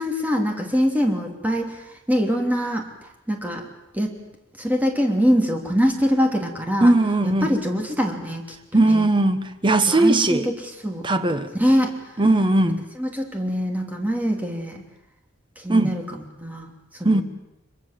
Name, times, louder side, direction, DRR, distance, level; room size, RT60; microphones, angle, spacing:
voice 1, 0.0-1.8 2.1-2.9 3.3-3.6 3.9-4.2 4.6-6.9 7.2-8.5 8.7-9.0 9.9-11.1 11.6-12.0 13.0-14.8 15.6-16.7 17.0-17.2, equal, 10° right, 2 dB, 3.1 m, -23 dB
voice 2, 6.8-7.5 8.7-10.5 11.0-11.5 12.2-12.8 15.7-15.9 17.0-17.2, right 2 dB, 25° right, 9 dB, 1.2 m, -18 dB
24.5 x 23.5 x 7.6 m, 0.92 s
head